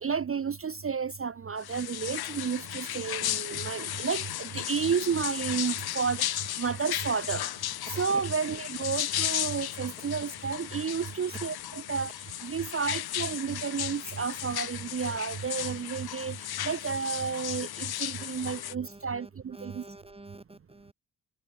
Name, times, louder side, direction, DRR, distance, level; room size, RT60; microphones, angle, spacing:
voice 1, 0.0-7.5 7.9-12.1 12.4-16.4 16.6-19.8, right 6 dB, 35° right, 0.5 m, -31 dB
sound 1, 1.6-18.7, left 12 dB, 60° left, 0.6 m, -35 dB
voice 2, 7.9-8.2 18.2-20.9, right 2 dB, 15° right, 2.5 m, -48 dB
wide cardioid pair, 175°, 43 cm